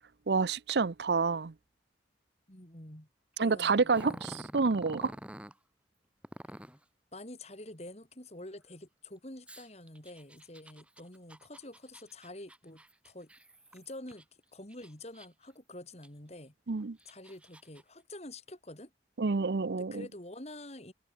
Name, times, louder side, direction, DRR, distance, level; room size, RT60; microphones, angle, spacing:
voice 1, 0.3-1.5 3.4-5.1 16.7-17.0 19.2-20.1, right 4 dB, 70° right, 0.6 m, -28 dB
voice 2, 2.5-3.1 3.4-4.5 7.1-13.3 13.7-14.3 14.5-16.5 17.0-18.9 19.8-20.9, left 1 dB, 40° left, 4.3 m, -47 dB
Growling, 3.9-5.6 6.2-6.8 9.5-14.2 14.7-15.5 16.0-16.1 16.8-17.8, equal, 5° right, 2.8 m, -48 dB
head